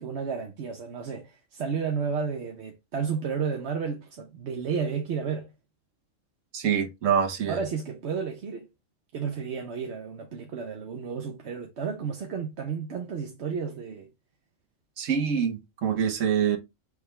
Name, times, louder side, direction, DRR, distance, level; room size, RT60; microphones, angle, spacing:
voice 1, 0.0-5.5 7.5-8.7 9.1-14.1, right 6 dB, 60° right, 1.0 m, -32 dB
voice 2, 6.5-7.6 15.0-16.6, right 7 dB, 80° right, 1.3 m, -25 dB
4.9 x 3.4 x 3.2 m
omnidirectional pair, 1.3 m